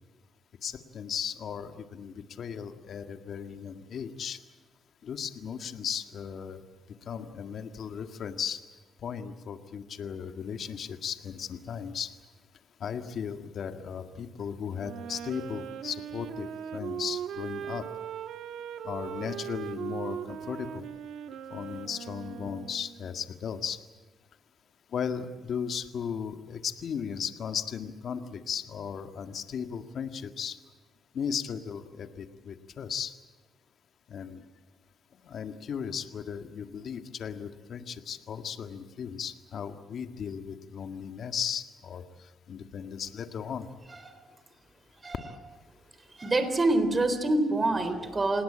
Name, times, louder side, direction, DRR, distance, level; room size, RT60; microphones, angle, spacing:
voice 1, 0.6-4.4 5.0-6.6 7.1-8.6 9.0-12.1 12.8-16.5 16.7-17.9 18.8-20.8 21.5-23.8 24.9-30.6 31.1-33.1 34.1-34.4 35.2-42.0 42.5-43.7, left 7 dB, 60° left, 7 dB, 1.8 m, -36 dB
Wind instrument woodwind instrument, 14.8-23.1, right 9 dB, 80° right, 1.4 m, -39 dB
voice 2, 46.1-48.4, right 2 dB, 25° right, 10 dB, 3.7 m, -26 dB
27.5 x 18.5 x 8.8 m, 1.3 s
cardioid pair, 90°, 0 cm